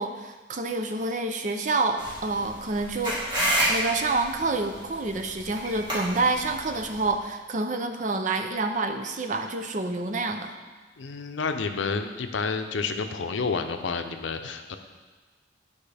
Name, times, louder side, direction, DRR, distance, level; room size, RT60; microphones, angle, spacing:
voice 1, 0.0-3.3 3.7-10.5, right 3 dB, 40° right, 5 dB, 0.5 m, -28 dB
sound 1, 2.0-7.1, right 1 dB, 25° right, 2.2 m, -30 dB
voice 2, 11.0-14.8, left 4 dB, 80° left, 7 dB, 0.6 m, -30 dB
11.0 x 5.2 x 3.4 m, 1.4 s
head